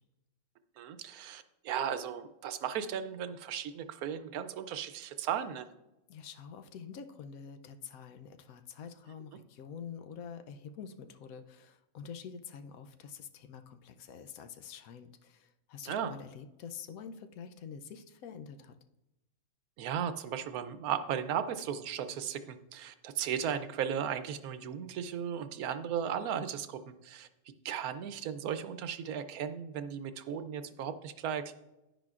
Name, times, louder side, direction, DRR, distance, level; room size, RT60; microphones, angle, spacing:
voice 1, 0.8-5.7 15.8-16.1 19.8-27.3 27.6-31.5, right 8 dB, 90° right, 11 dB, 1.1 m, -36 dB
voice 2, 6.1-18.8, left 7 dB, 75° left, 8 dB, 1.1 m, -47 dB
10.5 x 10.0 x 2.4 m, 0.97 s
omnidirectional pair, 1.5 m